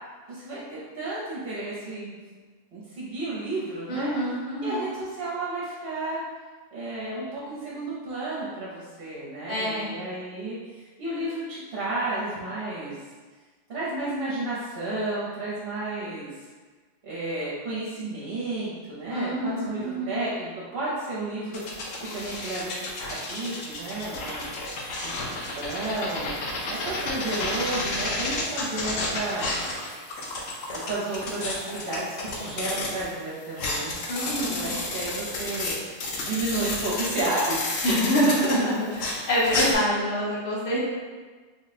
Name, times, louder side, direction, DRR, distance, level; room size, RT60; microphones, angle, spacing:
voice 1, 0.3-2.2 2.7-4.1 4.6-6.2 6.7-13.0 13.7-16.3 17.0-21.6 22.1-24.5 25.0-25.1 25.5-26.3 26.7-29.7 30.7-32.1 32.3-33.9 34.5-35.8 36.2-37.6 39.6-39.9, right 2 dB, 55° right, -8 dB, 0.9 m, -32 dB
voice 2, 3.9-4.8 9.5-9.9 19.1-20.2 34.1-34.6 37.8-38.8 39.3-40.8, equal, 60° left, -6 dB, 1.2 m, -26 dB
sound 1, 21.5-33.1 33.4-39.7, left 2 dB, 85° left, 1.0 m, -31 dB
3.5 x 2.2 x 4.1 m, 1.4 s
omnidirectional pair, 1.3 m